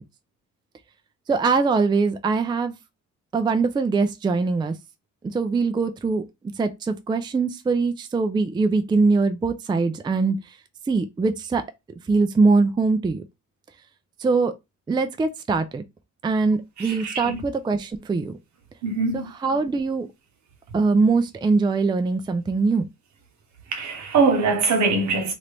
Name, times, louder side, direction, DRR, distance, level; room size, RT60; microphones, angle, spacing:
voice 1, 1.3-2.7 3.3-4.7 5.3-6.2 6.6-10.4 10.9-11.6 12.1-13.2 14.2-14.5 14.9-15.8 16.2-18.3 19.1-20.1 20.7-22.8, right 4 dB, 15° right, 0.4 m, -22 dB
voice 2, 16.8-17.4 18.8-19.3 23.7-25.3, right 4 dB, 65° right, 1.1 m, -22 dB
3.0 x 2.6 x 3.3 m
cardioid pair, 90°, 30 cm